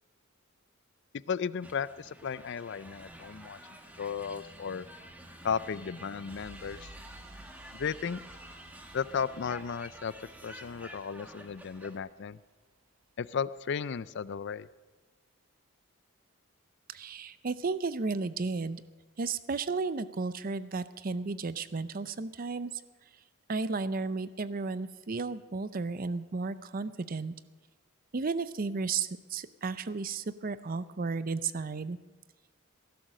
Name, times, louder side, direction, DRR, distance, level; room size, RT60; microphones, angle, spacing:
voice 1, 1.3-3.6 4.0-4.9 5.4-6.9 7.7-8.2 8.9-12.4 13.2-14.7, left 6 dB, 55° left, 17 dB, 0.4 m, -35 dB
sound 1, 1.6-12.0, right 1 dB, 5° right, 1.3 m, -50 dB
sound 2, 6.3-12.8 13.0-13.2, right 2 dB, 80° right, 1.3 m, -56 dB
voice 2, 16.9-18.8 19.2-22.7 23.5-27.3 28.1-32.0, right 4 dB, 40° right, 15 dB, 0.5 m, -33 dB
17.5 x 11.5 x 6.6 m, 1.3 s
head